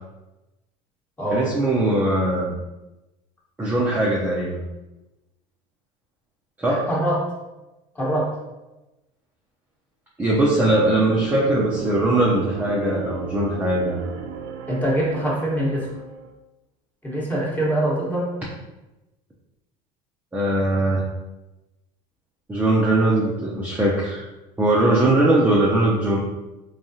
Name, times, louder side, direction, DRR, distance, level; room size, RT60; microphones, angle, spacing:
voice 1, 1.3-2.5 3.6-4.6 6.6-6.8 10.2-14.0 20.3-21.0 22.5-24.3 24.6-26.2, right 1 dB, 10° right, -5 dB, 0.6 m, -20 dB
voice 2, 6.7-7.2 7.9-8.3 14.7-15.9 17.0-18.3, right 1 dB, 10° left, -5 dB, 1.2 m, -23 dB
sound 1, 10.6-16.3, right 6 dB, 65° right, 0.6 m, -34 dB
3.8 x 3.4 x 2.7 m, 1.0 s
supercardioid pair, 130°, 17 cm